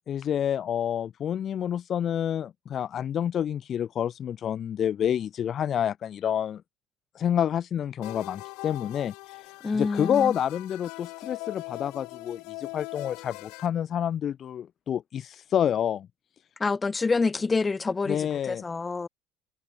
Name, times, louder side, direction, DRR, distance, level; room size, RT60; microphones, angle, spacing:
voice 1, 0.1-6.6 7.1-16.1 18.1-18.6, left 9 dB, 45° left, 0.5 m, -28 dB
sound 1, 8.0-13.7, left 28 dB, 70° left, 1.2 m, -41 dB
voice 2, 9.6-10.3 16.6-19.1, left 4 dB, 20° left, 1.3 m, -27 dB
supercardioid pair, 85°, 0 cm